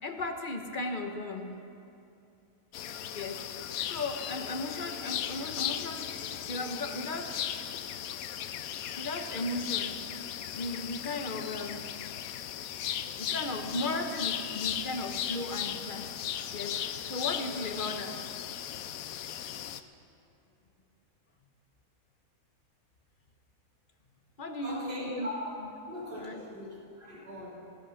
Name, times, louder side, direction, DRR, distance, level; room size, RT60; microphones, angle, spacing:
voice 1, 0.0-1.6 3.1-3.4 3.8-7.4 9.0-10.1 10.5-11.9 13.2-16.1 16.5-16.8 17.0-18.2 24.4-25.3 25.6-25.7 26.1-26.5, left 2 dB, 40° left, 4 dB, 1.2 m, -36 dB
sound 1, 2.7-19.8, left 10 dB, 80° left, 1.1 m, -37 dB
voice 2, 24.6-25.5 25.9-27.5, left 1 dB, 35° right, -5 dB, 3.6 m, -40 dB
22.0 x 8.4 x 6.4 m, 2.7 s
omnidirectional pair, 1.5 m